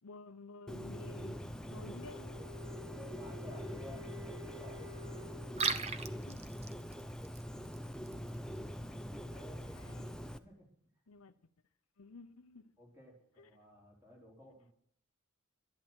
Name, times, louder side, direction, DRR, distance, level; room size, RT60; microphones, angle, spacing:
voice 1, 0.0-2.4 6.3-6.7 9.4-10.3 11.1-11.5 12.0-12.8 13.4-13.5, left 3 dB, 80° left, 0.8 m, -53 dB
Bird, 0.7-10.4, equal, 5° left, 0.6 m, -44 dB
Wind instrument woodwind instrument, 1.6-5.9, left 2 dB, 70° right, 6.3 m, -52 dB
voice 2, 2.8-4.9 8.9-9.7 10.4-10.7 12.8-14.7, left 1 dB, 15° right, 4.4 m, -54 dB
Liquid, 5.4-10.4, right 5 dB, 30° right, 0.8 m, -42 dB
12.0 x 11.5 x 7.5 m
head